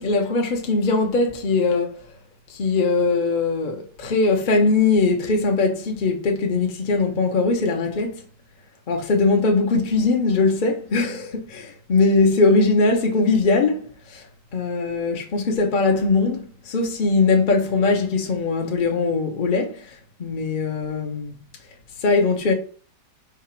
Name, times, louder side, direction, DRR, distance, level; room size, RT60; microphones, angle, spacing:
voice 1, 0.0-2.0 2.5-8.2 8.9-14.2 14.5-21.4 22.0-22.5, left 3 dB, 40° left, 0.8 m, -21 dB
4.9 x 2.4 x 4.4 m
omnidirectional pair, 1.8 m